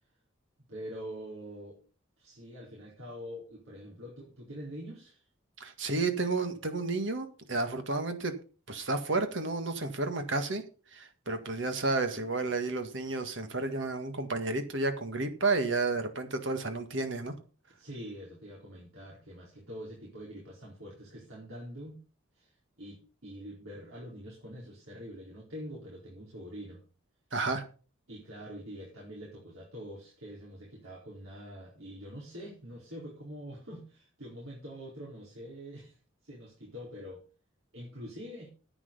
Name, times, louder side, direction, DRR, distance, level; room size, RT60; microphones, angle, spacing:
voice 1, 0.7-1.8 2.2-5.2 17.7-22.0 22.3-26.8 28.1-36.0 36.2-37.2 37.7-38.5, equal, 85° right, -4 dB, 4.5 m, -45 dB
voice 2, 5.6-8.3 8.7-10.6 10.9-17.3 27.3-27.6, right 3 dB, 60° right, 8 dB, 1.7 m, -31 dB
10.0 x 9.0 x 5.5 m, 0.37 s
head